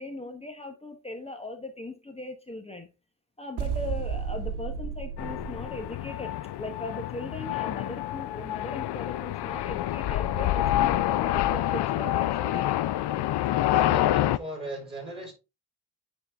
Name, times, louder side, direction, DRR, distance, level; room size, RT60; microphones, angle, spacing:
voice 1, 0.0-2.9 3.4-12.8 13.8-14.1, left 2 dB, 15° left, 1.1 m, -39 dB
sound 1, 3.6-6.3, right 7 dB, 80° right, 1.1 m, -33 dB
sound 2, 5.2-14.4, left 14 dB, 85° left, 0.6 m, -27 dB
voice 2, 13.7-15.3, right 1 dB, 15° right, 5.0 m, -37 dB
9.6 x 4.3 x 3.5 m
cardioid pair, 115°, 40 cm